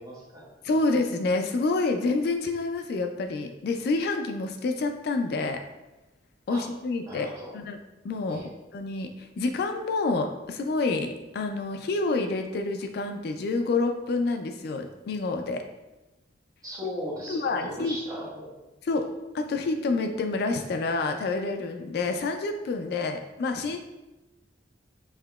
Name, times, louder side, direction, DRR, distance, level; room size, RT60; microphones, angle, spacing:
voice 1, 0.0-0.5 6.5-6.6 7.1-7.5 8.3-8.5 16.6-18.5 18.9-19.0, equal, 20° right, -6 dB, 1.0 m, -38 dB
voice 2, 0.6-5.6 6.5-7.8 8.0-15.6 17.3-18.0 18.8-19.0 19.3-23.8, left 3 dB, 60° left, 5 dB, 0.3 m, -28 dB
5.6 x 2.8 x 2.3 m, 1.0 s
head